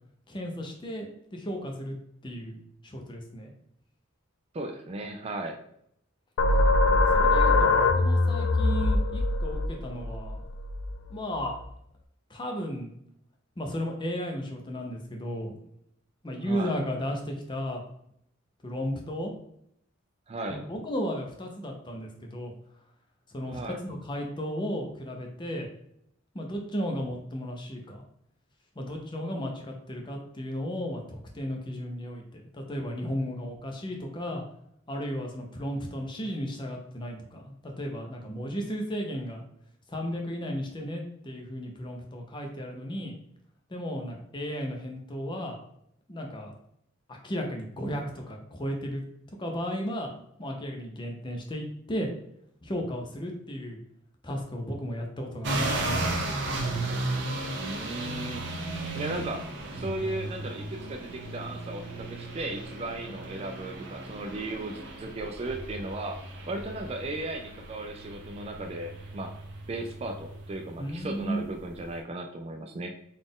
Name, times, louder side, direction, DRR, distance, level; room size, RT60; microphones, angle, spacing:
voice 1, 0.3-2.0 2.2-2.6 2.8-3.5 7.1-10.4 11.1-11.5 12.3-12.9 13.6-15.6 16.2-17.8 18.6-19.3 20.5-22.5 23.3-25.7 26.3-28.0 28.8-34.4 34.9-39.4 39.9-43.1 43.7-45.6 46.1-46.5 47.1-49.0 49.4-50.1 50.4-52.1 52.6-53.8 54.2-56.1 70.8-71.4, equal, 25° left, 2 dB, 0.6 m, -34 dB
voice 2, 4.5-5.6 16.4-16.7 20.3-20.6 23.5-23.8 57.6-58.5 58.9-66.2 66.5-69.3 69.7-72.9, right 2 dB, 30° right, 4 dB, 0.3 m, -36 dB
sound 1, 6.4-11.6, left 2 dB, 70° left, 0.4 m, -23 dB
sound 2, 55.4-72.0, right 2 dB, 60° right, 0.7 m, -35 dB
4.0 x 2.4 x 3.6 m, 0.72 s
head